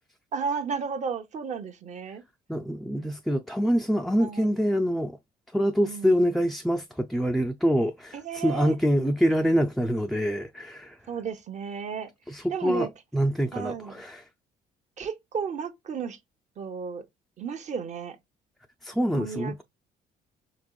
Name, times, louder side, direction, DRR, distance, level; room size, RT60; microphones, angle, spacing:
voice 1, 0.3-2.2 4.2-4.5 5.8-6.4 8.1-8.8 11.1-12.1 12.5-12.9 13.5-13.9 15.0-16.2 16.6-17.0 17.4-18.2 19.1-19.6, right 6 dB, 45° right, 0.8 m, -33 dB
voice 2, 2.5-5.2 5.5-11.0 12.3-12.9 13.1-14.2 18.8-19.6, equal, ahead, 0.4 m, -25 dB
5.2 x 2.9 x 2.3 m
cardioid pair, 110°, 17 cm